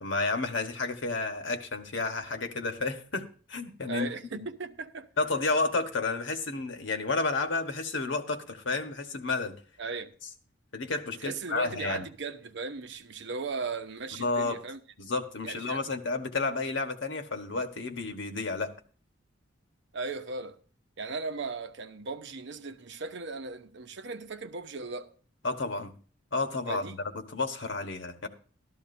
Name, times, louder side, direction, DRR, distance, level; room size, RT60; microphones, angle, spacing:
voice 1, 0.0-4.5 5.2-9.5 10.7-12.1 14.2-14.6 15.0-18.7 25.4-25.9 26.3-28.3, left 3 dB, 70° left, 1.3 m, -31 dB
voice 2, 3.9-5.1 9.8-10.1 11.2-14.8 15.4-15.8 19.9-20.6 21.0-25.1 26.7-27.0, right 4 dB, 65° right, 0.8 m, -37 dB
13.0 x 13.0 x 2.7 m
head